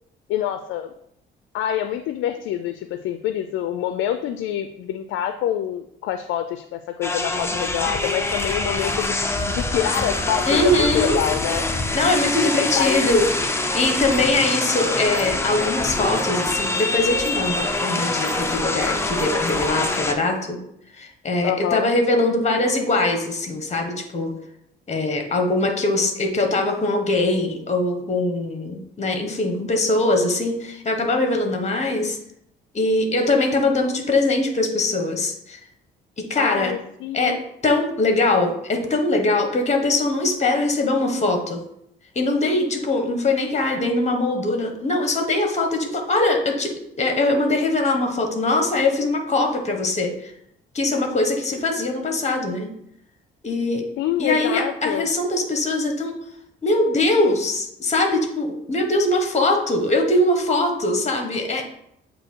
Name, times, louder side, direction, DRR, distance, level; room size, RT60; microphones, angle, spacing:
voice 1, 0.3-0.9 1.5-9.1 9.5-11.7 12.4-13.1 21.4-21.9 36.4-37.4 54.0-55.1, left 10 dB, 85° left, 9 dB, 0.4 m, -26 dB
sound 1, 7.0-20.1, left 2 dB, 15° left, 0.6 m, -25 dB
voice 2, 10.4-11.2 11.9-13.3 13.5-20.6 21.0-24.3 24.9-32.2 32.7-35.6 36.2-36.7 37.1-37.4 37.6-41.6 42.1-50.3 50.7-52.7 53.4-53.8 54.2-56.2 56.6-61.6, left 2 dB, 35° left, 5 dB, 1.2 m, -22 dB
7.7 x 2.7 x 4.5 m, 0.75 s
cardioid pair, 90°, 20 cm